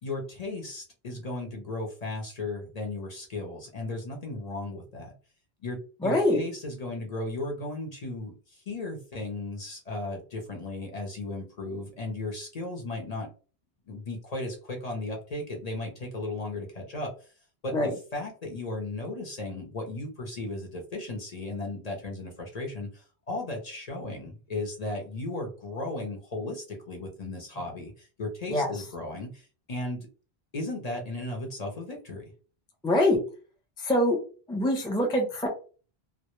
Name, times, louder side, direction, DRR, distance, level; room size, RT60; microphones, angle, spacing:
voice 1, 0.0-5.1 5.6-13.3 13.9-17.3 17.6-30.1 30.5-32.3, left 2 dB, 45° left, 0 dB, 0.7 m, -36 dB
voice 2, 6.0-6.4 17.7-17.9 28.5-28.7 32.8-33.2 33.8-34.2 34.5-35.5, left 1 dB, 5° left, 1 dB, 0.4 m, -24 dB
2.1 x 2.1 x 2.9 m, 0.37 s
omnidirectional pair, 1.0 m